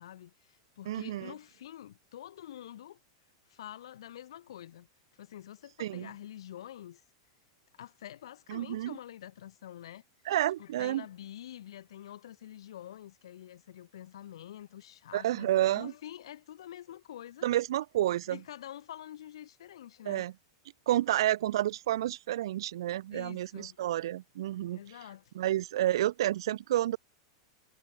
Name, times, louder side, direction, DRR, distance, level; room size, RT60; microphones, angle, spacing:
voice 1, 0.0-3.0 3.5-4.9 5.2-7.0 7.8-10.0 10.6-17.5 18.3-20.3 22.8-23.8 24.7-25.2, left 11 dB, 85° left, 1.4 m, -47 dB
voice 2, 0.9-1.3 5.8-6.1 8.5-9.0 10.3-11.0 15.1-15.9 17.4-18.4 20.1-20.3 20.9-24.8 25.3-27.0, right 13 dB, 65° right, 0.8 m, -30 dB
supercardioid pair, 175°, 3 cm